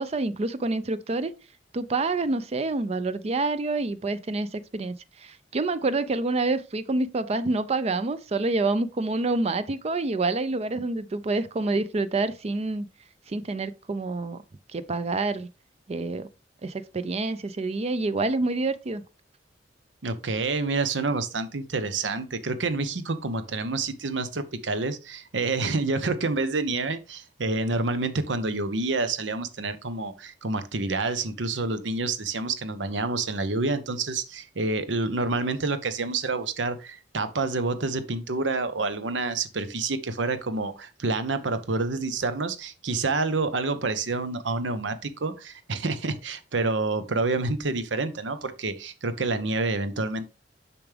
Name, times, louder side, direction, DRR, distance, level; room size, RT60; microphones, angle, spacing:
voice 1, 0.0-1.3 1.7-12.9 13.3-14.4 14.7-15.5 15.9-16.3 16.6-19.0, right 3 dB, 35° right, 0.4 m, -27 dB
voice 2, 20.0-50.3, right 3 dB, 80° right, 0.9 m, -28 dB
7.0 x 6.0 x 3.4 m
head